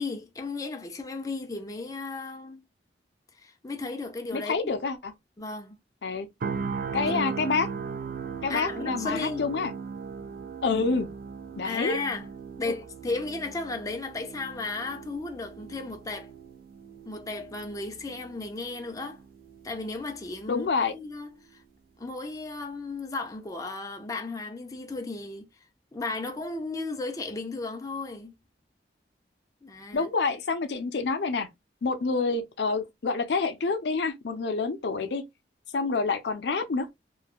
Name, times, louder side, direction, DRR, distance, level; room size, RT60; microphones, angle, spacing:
voice 1, 0.0-2.6 3.4-4.7 5.4-5.8 7.1-7.2 8.5-9.5 11.6-12.3 12.6-16.3 17.1-19.2 19.6-21.6 22.0-25.5 25.9-28.3 29.6-30.1, left 3 dB, 20° left, 0.5 m, -35 dB
voice 2, 4.3-5.1 6.0-6.3 6.9-7.7 8.4-9.7 10.6-11.1 11.6-12.0 12.6-12.7 20.5-20.9 29.9-31.5 31.8-35.2 35.7-36.9, left 4 dB, 70° left, 0.5 m, -27 dB
sound 1, 6.4-20.4 20.7-21.0, right 5 dB, 55° right, 0.4 m, -38 dB
3.1 x 2.3 x 2.4 m
head